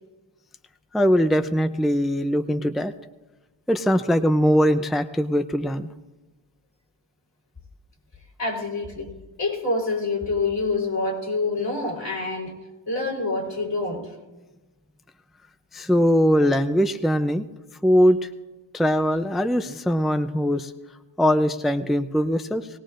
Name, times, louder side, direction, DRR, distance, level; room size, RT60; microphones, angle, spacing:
voice 1, 0.9-2.9 3.7-5.9 15.7-17.5 17.8-18.3 18.7-20.7 21.2-22.7, equal, ahead, 9 dB, 0.5 m, -21 dB
voice 2, 8.4-9.1 9.4-12.5 12.9-14.0, left 3 dB, 65° left, -3 dB, 4.3 m, -26 dB
20.5 x 18.0 x 2.5 m, 1.1 s
wide cardioid pair, 60°, 46 cm